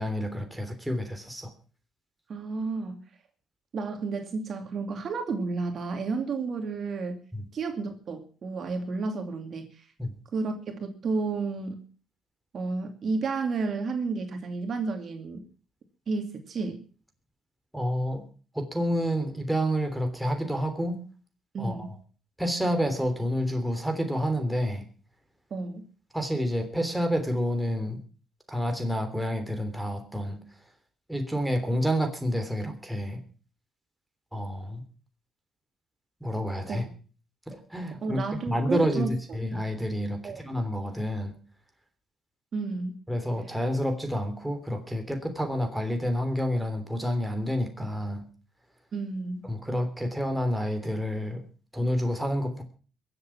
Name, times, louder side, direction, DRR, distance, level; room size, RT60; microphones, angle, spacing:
voice 1, 0.0-1.5 7.3-7.4 10.0-10.1 17.7-18.2 18.5-21.0 21.6-21.9 22.4-24.8 26.1-28.0 28.5-30.4 31.1-33.2 34.3-34.8 36.2-36.8 37.5-41.3 43.1-48.3 49.4-51.4 51.7-52.6, equal, 5° right, 5 dB, 3.3 m, -29 dB
voice 2, 2.3-3.0 3.7-7.2 7.5-9.9 10.3-11.8 12.5-15.4 16.1-16.8 21.5-21.9 25.5-25.8 36.7-36.8 38.0-39.1 40.2-40.4 42.5-43.0 48.9-49.5, right 4 dB, 55° right, 5 dB, 2.5 m, -31 dB
22.0 x 8.0 x 6.0 m, 0.39 s
cardioid pair, 90°, 0 cm